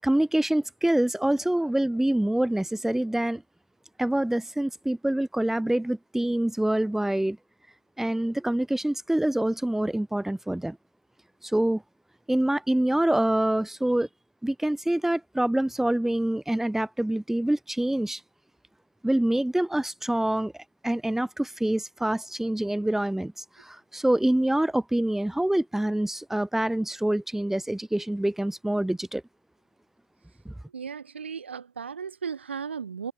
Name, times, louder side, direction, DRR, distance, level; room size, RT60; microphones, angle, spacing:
voice 1, 0.0-3.4 4.0-7.4 8.0-10.8 11.4-11.8 12.3-14.1 14.4-18.2 19.0-20.5 20.8-29.2 30.4-30.5, right 1 dB, 5° right, 6.7 m, -26 dB
voice 2, 30.7-33.1, right 6 dB, 90° right, 7.6 m, -35 dB
hypercardioid pair, 65°, 6 cm